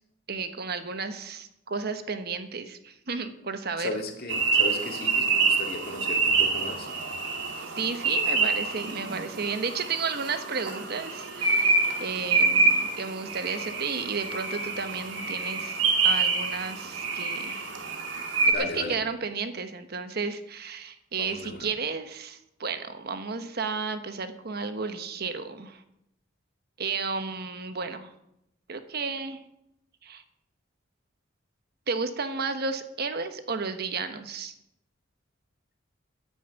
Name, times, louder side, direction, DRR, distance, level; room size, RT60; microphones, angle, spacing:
voice 1, 0.3-3.9 7.8-17.7 18.4-25.8 26.8-28.1 28.7-29.4 30.0-30.2 31.9-34.5, right 4 dB, 55° right, 9 dB, 1.1 m, -33 dB
voice 2, 3.8-6.9 18.5-19.0 21.2-21.7, left 2 dB, 55° left, 3 dB, 2.2 m, -36 dB
sound 1, 4.3-18.5, right 4 dB, 85° right, 2.4 m, -26 dB
10.5 x 8.9 x 8.2 m, 0.82 s
head